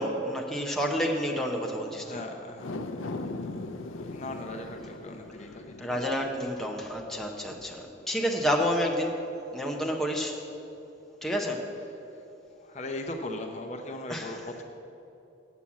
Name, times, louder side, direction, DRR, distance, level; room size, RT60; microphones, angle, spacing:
voice 1, 0.0-2.2 5.8-9.2 9.5-10.4 11.2-11.6 14.1-14.4, equal, ahead, -1 dB, 0.7 m, -29 dB
voice 2, 1.9-2.7 3.5-6.0 12.6-14.6, left 2 dB, 35° left, 4 dB, 0.7 m, -39 dB
sound 1, 2.5-9.0 9.4-9.5, left 2 dB, 80° left, 0.5 m, -41 dB
8.5 x 7.6 x 7.1 m, 2.9 s
head